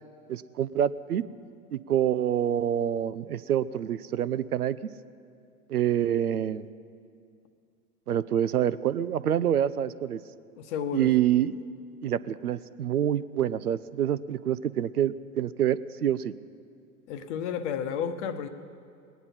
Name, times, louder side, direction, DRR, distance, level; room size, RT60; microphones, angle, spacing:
voice 1, 0.3-1.2 1.7-4.8 5.7-6.7 8.1-10.2 10.9-11.6 12.0-16.3, right 10 dB, 85° right, 16 dB, 0.6 m, -26 dB
voice 2, 10.6-11.1 17.1-18.5, left 8 dB, 50° left, 10 dB, 1.1 m, -32 dB
20.5 x 9.4 x 5.6 m, 2.4 s
figure-of-eight pair, 95°, 44 cm